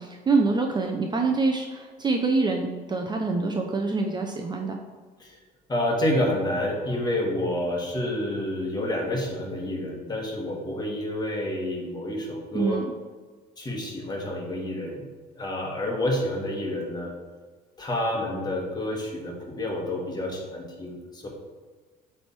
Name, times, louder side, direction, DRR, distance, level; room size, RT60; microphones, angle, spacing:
voice 1, 0.0-4.8 12.5-12.9, right 3 dB, 25° right, 3 dB, 0.6 m, -25 dB
voice 2, 5.7-12.8 13.6-15.0 15.3-17.1 17.8-21.3, left 1 dB, 25° left, -1 dB, 1.6 m, -29 dB
7.7 x 3.4 x 4.3 m, 1.4 s
cardioid pair, 110°, 17 cm